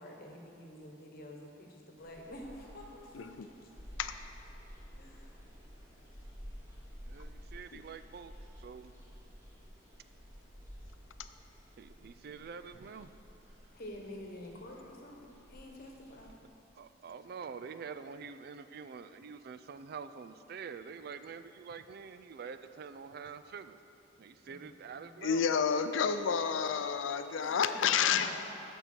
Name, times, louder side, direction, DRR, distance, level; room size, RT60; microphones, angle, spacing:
voice 1, 0.0-3.1 5.0-5.3 13.7-16.3 24.4-25.2 27.7-28.3, left 1 dB, 50° left, 0 dB, 1.2 m, -48 dB
sound 1, 2.0-16.5, equal, 15° right, 2.1 m, -52 dB
voice 2, 3.1-3.5 4.0-4.1 7.7-7.8 25.2-28.3, left 7 dB, 80° left, 10 dB, 0.5 m, -30 dB
voice 3, 7.0-8.9 11.8-13.1 16.8-23.8 24.2-25.5, right 6 dB, 55° right, 11 dB, 0.3 m, -46 dB
13.5 x 5.4 x 4.5 m, 2.8 s
head